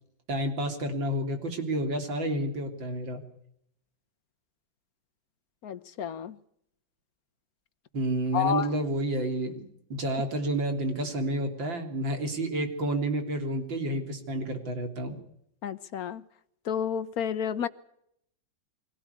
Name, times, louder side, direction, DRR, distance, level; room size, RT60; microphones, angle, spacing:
voice 1, 0.3-3.2 7.9-15.2, right 1 dB, 85° right, 4.1 m, -30 dB
voice 2, 5.6-6.4 8.3-8.7 15.6-16.2 16.6-17.7, left 8 dB, 55° left, 1.4 m, -30 dB
24.0 x 17.5 x 8.4 m
omnidirectional pair, 2.0 m